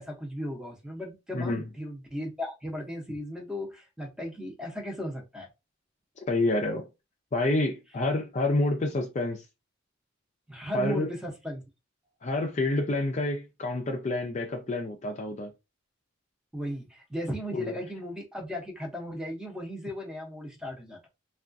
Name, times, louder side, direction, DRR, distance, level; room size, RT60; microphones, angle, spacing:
voice 1, 0.0-5.5 10.5-11.6 16.5-21.1, left 1 dB, 5° right, 0.7 m, -36 dB
voice 2, 1.3-1.7 6.3-6.9 7.3-9.4 10.7-11.1 12.2-15.5 17.5-17.7, left 2 dB, 35° left, 0.4 m, -28 dB
3.4 x 2.3 x 2.5 m
head